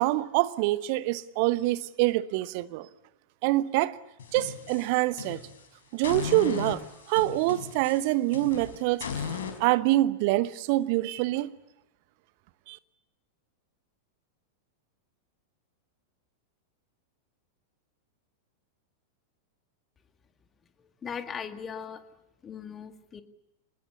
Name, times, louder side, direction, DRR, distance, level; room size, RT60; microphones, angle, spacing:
voice 1, 0.0-2.9 3.4-4.0 4.3-5.4 5.9-6.8 7.1-11.5 12.7-12.8, right 17 dB, 45° right, 1.0 m, -26 dB
sound 1, 4.2-5.6 6.0-9.6, left 6 dB, 60° left, 4.7 m, -37 dB
voice 2, 21.0-22.0 22.4-23.2, left 7 dB, 20° left, 2.0 m, -38 dB
25.0 x 21.0 x 8.4 m
figure-of-eight pair, 90°, 0 cm